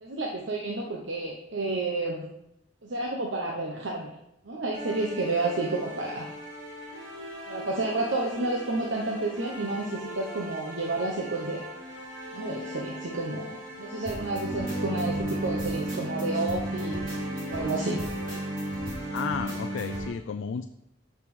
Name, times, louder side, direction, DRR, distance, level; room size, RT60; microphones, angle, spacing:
voice 1, 0.0-2.3 2.8-4.1 4.4-6.3 7.5-11.6 12.3-17.2 17.5-18.0, right 2 dB, 75° right, -1 dB, 1.0 m, -30 dB
sound 1, 4.7-20.1, right 1 dB, 45° right, 3.1 m, -35 dB
voice 2, 19.1-20.6, left 6 dB, 75° left, 9 dB, 0.4 m, -32 dB
6.1 x 5.9 x 6.3 m, 0.85 s
head